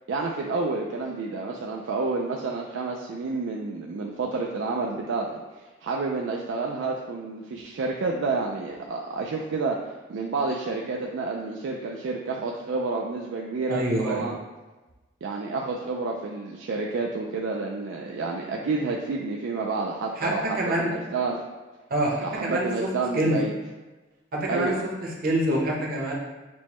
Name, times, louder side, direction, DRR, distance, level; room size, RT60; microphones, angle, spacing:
voice 1, 0.1-5.4 5.8-9.8 10.1-14.4 15.2-21.4 22.2-23.5 24.5-24.8, right 3 dB, 65° right, -1 dB, 0.3 m, -29 dB
voice 2, 13.7-14.3 20.2-20.9 21.9-22.9 23.1-23.4 24.3-24.7 25.2-26.1, right 1 dB, 45° right, -3 dB, 0.8 m, -26 dB
6.0 x 2.1 x 2.9 m, 1.2 s
head